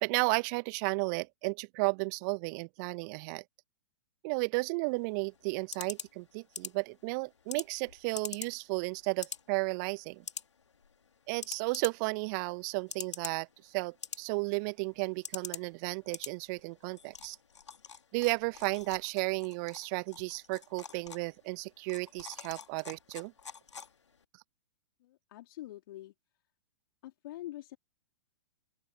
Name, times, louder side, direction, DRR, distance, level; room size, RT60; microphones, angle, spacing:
voice 1, 0.0-3.4 4.2-10.2 11.3-17.4 18.1-23.3, right 30 dB, 40° right, 1.3 m, -33 dB
sound 1, 4.9-24.2, left 6 dB, 75° left, 2.1 m, -47 dB
voice 2, 25.0-26.1 27.0-27.8, left 15 dB, 50° left, 4.1 m, -45 dB
open air
figure-of-eight pair, 110°, 15 cm